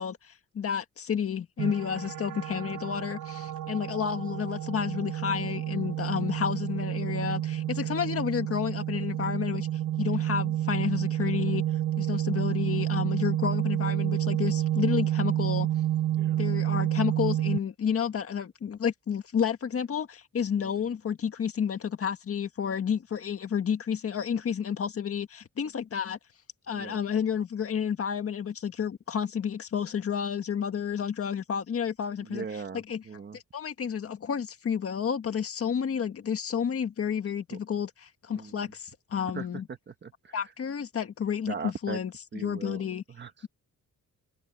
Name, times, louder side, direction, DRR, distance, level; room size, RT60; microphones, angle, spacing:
voice 1, 0.0-9.7 10.0-11.6 12.0-15.7 16.4-26.2 26.7-32.4 32.7-33.0 33.3-39.7 40.3-42.1 42.4-43.0, left 7 dB, 45° left, 1.7 m, -30 dB
sound 1, 1.6-17.6, right 12 dB, 80° right, 0.9 m, -29 dB
voice 2, 16.1-16.4 20.6-20.9 26.7-27.0 32.2-33.4 37.5-37.6 38.3-38.7 39.3-40.4 41.5-42.0 42.3-43.5, right 5 dB, 35° right, 1.3 m, -40 dB
wide cardioid pair, 170°, 32 cm